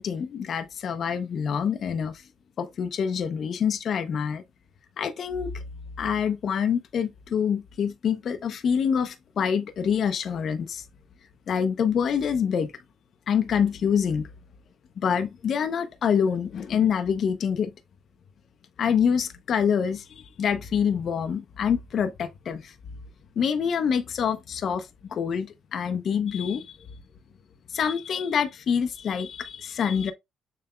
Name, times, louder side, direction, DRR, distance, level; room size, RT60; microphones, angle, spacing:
voice 1, 0.0-2.2 2.6-4.4 5.0-5.6 6.0-10.8 11.5-12.7 13.3-14.3 15.0-17.7 18.8-22.7 23.4-26.8 27.7-30.1, left 7 dB, 60° left, 0.7 m, -26 dB
6.8 x 3.3 x 2.2 m
cardioid pair, 90°, 0 cm